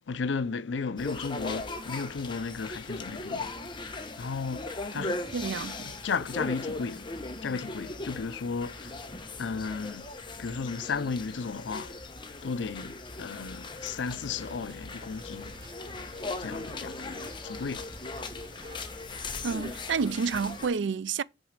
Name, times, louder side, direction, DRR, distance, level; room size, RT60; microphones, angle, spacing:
voice 1, 0.1-3.5 4.2-5.2 5.8-7.1 7.4-9.0 9.4-12.0 12.4-15.6 16.4-18.2, left 5 dB, 90° left, 0.5 m, -34 dB
sound 1, 1.0-20.7, left 3 dB, 25° left, 1.1 m, -39 dB
voice 2, 4.9-5.9 19.4-21.2, right 5 dB, 80° right, 0.4 m, -30 dB
sound 2, 14.1-20.1, equal, 30° right, 2.4 m, -49 dB
6.2 x 4.8 x 6.5 m
head